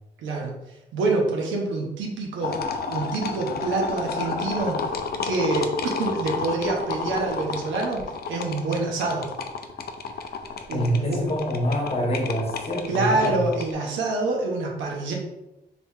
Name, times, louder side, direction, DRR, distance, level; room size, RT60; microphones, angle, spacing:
voice 1, 0.2-0.5 0.9-2.6 2.9-4.8 5.1-8.0 8.3-9.3 10.7-11.2 12.9-15.1, right 3 dB, 90° right, 0 dB, 0.7 m, -26 dB
sound 1, 2.4-13.7, left 5 dB, 55° left, 0.4 m, -31 dB
voice 2, 10.7-13.5, equal, 30° left, 0 dB, 1.0 m, -26 dB
3.4 x 3.0 x 2.7 m, 0.93 s
supercardioid pair, 55°, 19 cm